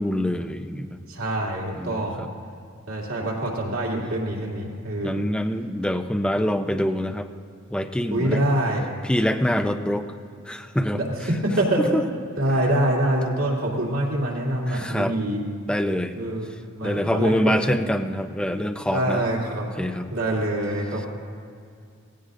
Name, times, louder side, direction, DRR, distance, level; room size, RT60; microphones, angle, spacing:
voice 1, 0.0-1.0 1.8-2.3 5.0-7.3 7.7-8.4 9.0-10.1 10.5-11.0 11.9-12.0 14.7-15.1 15.7-16.2 16.8-19.2 19.8-20.1, equal, 5° left, 6 dB, 0.5 m, -25 dB
voice 2, 1.1-2.2 2.9-5.3 8.1-8.9 10.9-15.4 16.2-17.8 18.9-19.7 20.1-21.1, right 1 dB, 85° right, -3 dB, 2.7 m, -25 dB
17.0 x 16.0 x 2.6 m, 2.3 s
head